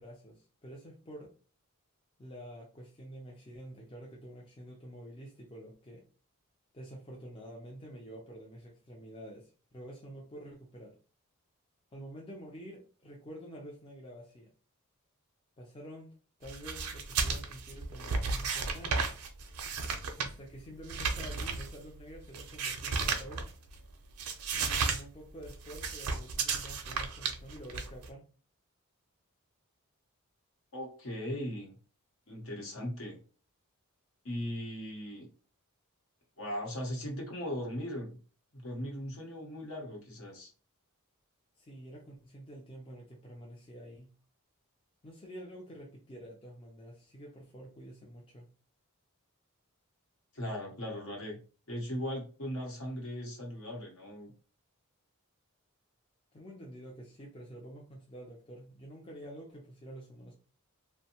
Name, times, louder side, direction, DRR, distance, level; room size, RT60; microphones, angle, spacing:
voice 1, 0.0-1.3 2.2-6.0 6.7-10.9 11.9-14.5 15.6-19.1 20.2-23.5 24.5-28.3 41.6-44.1 45.0-48.5 56.3-60.3, equal, 25° left, -1 dB, 0.5 m, -48 dB
sound 1, 16.4-23.8 24.1-25.0 25.3-28.1, right 4 dB, 80° right, 0.5 m, -34 dB
voice 2, 30.7-31.7 32.3-33.2 34.2-35.3 36.4-38.2 38.5-40.5 50.3-51.4 51.7-54.3, equal, 65° left, 0 dB, 1.0 m, -38 dB
2.6 x 2.2 x 2.8 m, 0.36 s
head